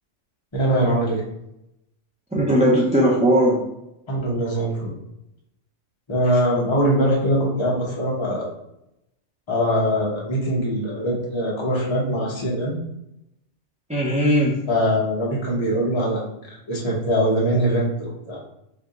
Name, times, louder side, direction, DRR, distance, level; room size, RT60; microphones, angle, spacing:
voice 1, 0.5-1.2 4.1-4.9 6.1-8.5 9.5-12.8 14.7-16.3 16.7-18.4, equal, 25° left, -4 dB, 1.1 m, -22 dB
voice 2, 2.3-3.6 13.9-14.6, equal, 10° right, -5 dB, 0.5 m, -18 dB
4.8 x 2.8 x 3.8 m, 0.83 s
omnidirectional pair, 1.2 m